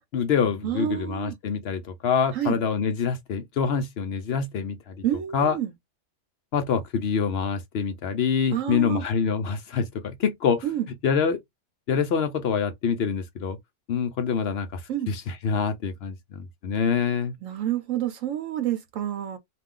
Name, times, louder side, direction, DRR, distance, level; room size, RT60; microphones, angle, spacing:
voice 1, 0.1-5.0 5.3-5.6 6.5-10.6 11.0-11.4 11.9-13.6 13.9-14.8 15.1-17.3, left 6 dB, 65° left, 0.6 m, -26 dB
voice 2, 0.6-1.4 2.3-2.6 5.0-5.7 8.5-9.1 10.6-10.9 14.9-15.1 17.4-19.4, right 11 dB, 70° right, 0.9 m, -28 dB
2.4 x 2.3 x 3.6 m
omnidirectional pair, 1.5 m